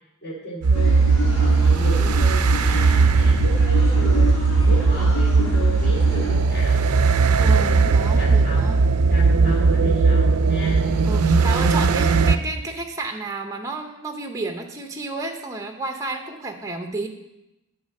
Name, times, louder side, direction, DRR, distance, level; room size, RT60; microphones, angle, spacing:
voice 1, 0.2-1.0 1.4-6.9 7.2-7.7 8.2-8.8 9.1-10.9, equal, 45° left, -3 dB, 2.6 m, -34 dB
sound 1, 0.6-12.4, right 4 dB, 85° right, 0.5 m, -18 dB
sound 2, 0.7-6.4, equal, 90° left, 2.8 m, -29 dB
voice 2, 1.8-2.3 7.4-8.8 9.4-9.7 11.1-17.1, right 3 dB, 15° right, 4 dB, 0.6 m, -31 dB
8.5 x 4.8 x 6.3 m, 0.93 s
head